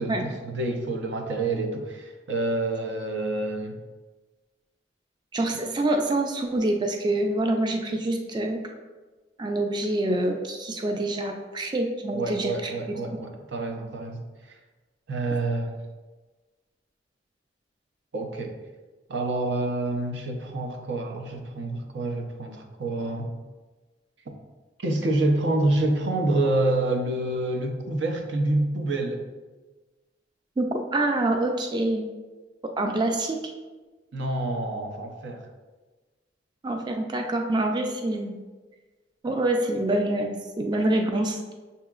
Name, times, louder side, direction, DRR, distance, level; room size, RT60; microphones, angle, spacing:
voice 1, 0.0-3.8 12.1-14.2 14.5-14.6 15.1-15.8 18.1-18.5 19.1-23.3 24.8-29.2 34.1-35.5, right 2 dB, 80° right, 3 dB, 0.6 m, -27 dB
voice 2, 5.3-8.6 9.4-12.7 30.6-32.1 32.6-33.4 36.6-38.4 39.2-41.4, right 1 dB, 25° right, 3 dB, 0.3 m, -26 dB
6.7 x 2.8 x 2.4 m, 1.3 s
head